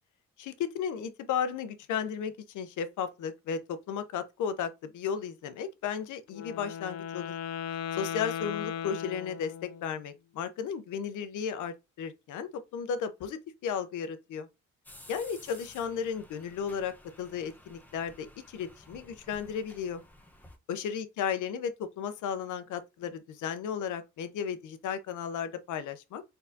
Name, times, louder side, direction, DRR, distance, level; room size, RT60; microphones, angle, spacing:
voice 1, 0.4-7.3 7.9-14.5 15.1-20.0 20.7-26.2, left 7 dB, 80° left, 0.8 m, -34 dB
Wind instrument woodwind instrument, 6.3-9.9, left 8 dB, 55° left, 0.5 m, -37 dB
sound 1, 14.9-20.6, left 1 dB, 5° left, 0.9 m, -54 dB
4.3 x 3.9 x 2.7 m
cardioid pair, 90°, 30 cm